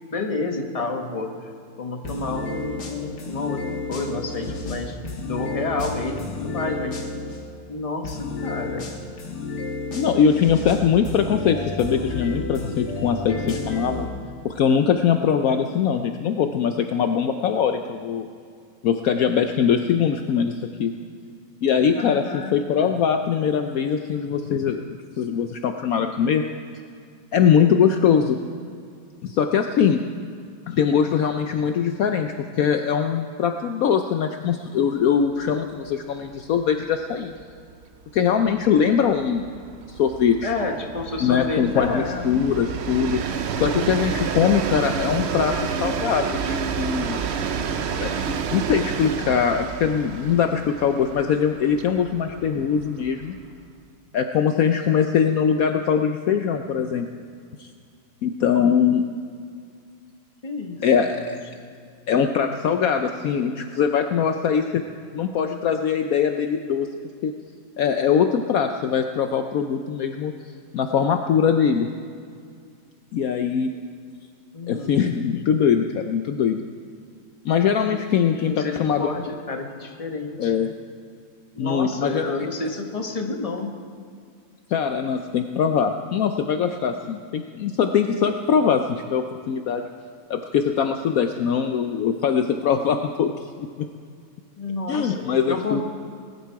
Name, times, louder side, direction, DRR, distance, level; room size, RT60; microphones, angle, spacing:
voice 1, 0.1-1.3 1.8-5.0 5.2-7.0 7.7-8.9 21.9-22.9 40.4-42.2 60.4-61.1 74.5-74.9 77.9-78.1 78.3-79.2 79.5-80.5 81.5-83.7 94.6-95.8, left 3 dB, 25° left, 3 dB, 1.3 m, -30 dB
sound 1, 2.0-7.4 8.0-14.0, left 3 dB, 85° left, 2.2 m, -31 dB
voice 2, 9.9-14.1 14.4-18.3 18.8-20.9 21.6-26.4 27.3-28.4 29.2-30.0 30.7-37.3 38.1-39.5 39.9-40.5 41.2-45.5 45.8-47.2 48.0-48.1 48.5-53.4 54.1-57.1 57.6-57.7 58.2-59.0 60.8-61.4 62.1-64.8 65.1-66.9 67.2-67.3 67.8-70.3 70.7-71.9 73.1-73.7 74.7-76.6 77.4-79.1 80.4-80.7 81.6-82.3 84.7-89.8 90.3-93.3 93.6-93.7 94.9-95.8, left 7 dB, 65° left, 6 dB, 1.0 m, -22 dB
Train, 35.4-35.6 35.9-36.0 36.3-53.7, right 6 dB, 55° right, 0.8 m, -30 dB
20.0 x 11.5 x 4.7 m, 2.3 s
omnidirectional pair, 1.7 m